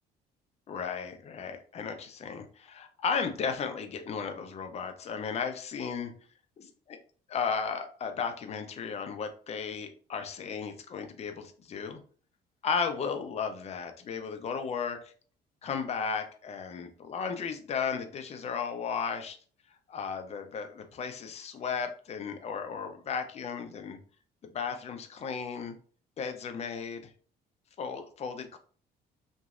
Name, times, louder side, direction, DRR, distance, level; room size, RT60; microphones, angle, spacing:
voice 1, 0.7-6.1 7.3-12.0 12.6-15.1 15.6-19.4 19.9-24.0 24.5-25.8 26.2-27.1 27.8-28.6, left 6 dB, 40° left, 6 dB, 0.5 m, -34 dB
3.0 x 2.6 x 2.4 m, 0.43 s
cardioid pair, 110°, 17 cm